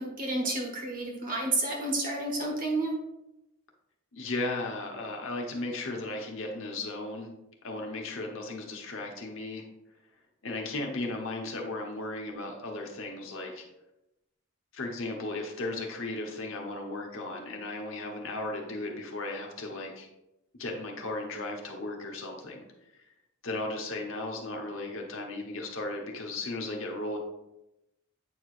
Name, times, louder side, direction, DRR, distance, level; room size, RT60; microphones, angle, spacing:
voice 1, 0.0-2.9, right 2 dB, 40° right, 0 dB, 1.3 m, -30 dB
voice 2, 4.1-7.3 7.6-9.6 10.4-13.6 14.7-20.1 20.6-22.6 23.4-27.2, left 2 dB, 65° left, 1 dB, 1.1 m, -35 dB
8.2 x 4.8 x 2.5 m, 0.92 s
head